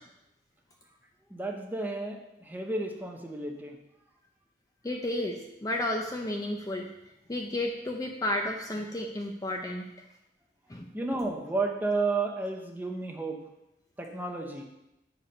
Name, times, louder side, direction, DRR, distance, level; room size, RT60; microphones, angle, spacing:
voice 1, 1.3-3.8 10.9-13.4 14.0-14.6, right 3 dB, 10° right, 1 dB, 0.9 m, -32 dB
voice 2, 4.8-6.9 7.3-9.9 10.7-10.9, left 1 dB, 20° left, 2 dB, 0.6 m, -32 dB
8.4 x 4.9 x 5.3 m, 0.89 s
head